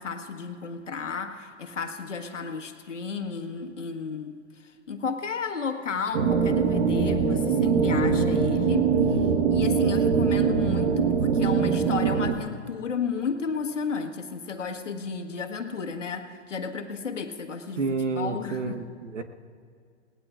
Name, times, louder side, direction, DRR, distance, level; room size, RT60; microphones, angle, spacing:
voice 1, 0.0-9.2 9.5-17.8 18.1-18.8, left 5 dB, 90° left, 5 dB, 1.5 m, -33 dB
sound 1, 6.1-12.3, right 6 dB, 60° right, 1.3 m, -22 dB
voice 2, 17.8-19.2, right 4 dB, 85° right, 7 dB, 1.3 m, -29 dB
29.5 x 19.0 x 2.5 m, 2.2 s
hypercardioid pair, 115°, 36 cm